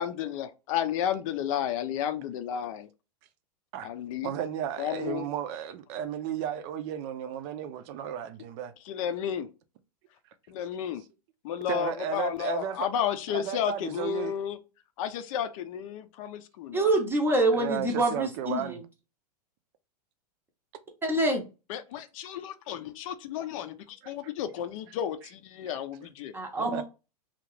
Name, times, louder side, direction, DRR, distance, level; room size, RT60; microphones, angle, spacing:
voice 1, 0.0-2.9 3.8-4.3 4.8-5.2 8.8-9.5 10.5-11.0 11.4-14.6 15.0-16.9 21.7-26.3, left 9 dB, 55° left, 0.5 m, -32 dB
voice 2, 4.2-8.7 11.7-12.9 13.3-14.3 17.5-18.8 24.0-24.1 26.6-26.8, right 9 dB, 45° right, 0.5 m, -34 dB
voice 3, 16.7-18.8 21.0-21.4 26.3-26.8, right 2 dB, 10° right, 0.7 m, -26 dB
2.8 x 2.4 x 3.0 m
hypercardioid pair, 120°, 21 cm